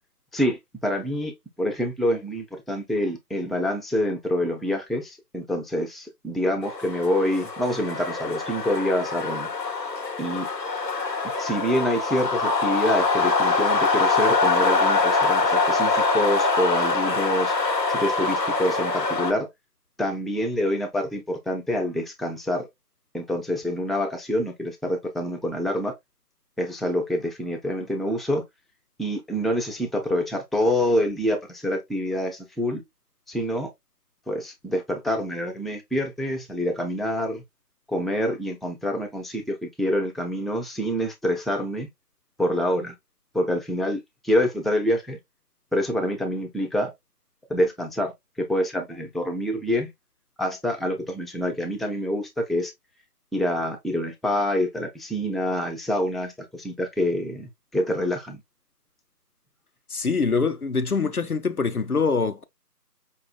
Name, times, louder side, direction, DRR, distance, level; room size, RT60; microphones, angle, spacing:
voice 1, 0.8-1.3 1.6-9.5 10.2-10.5 11.4-17.5 17.9-19.5 20.0-22.7 23.1-25.9 26.6-28.4 29.0-32.8 33.3-33.7 34.3-37.4 37.9-41.9 42.4-42.9 43.3-45.2 45.7-46.9 47.5-48.1 48.4-49.9 50.4-52.7 53.3-58.4, equal, ahead, 0.5 m, -26 dB
sound 1, 6.6-19.3, left 3 dB, 85° left, 1.1 m, -24 dB
voice 2, 59.9-62.4, left 4 dB, 60° left, 0.6 m, -24 dB
5.4 x 2.3 x 2.4 m
figure-of-eight pair, 180°, 49 cm